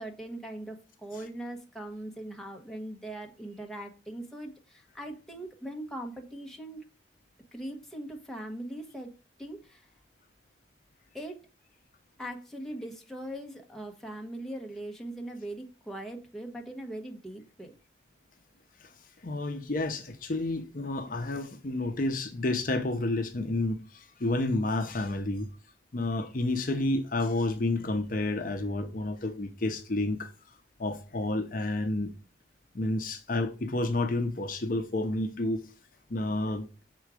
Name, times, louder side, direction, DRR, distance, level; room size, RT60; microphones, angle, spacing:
voice 1, 0.0-6.8 7.5-9.1 9.4-9.9 11.1-11.4 12.2-17.8, right 1 dB, ahead, 1.0 m, -40 dB
voice 2, 19.2-25.5 25.9-30.3 30.8-32.1 32.7-35.7 36.1-36.7, left 2 dB, 50° left, 0.7 m, -30 dB
6.2 x 3.8 x 4.8 m
head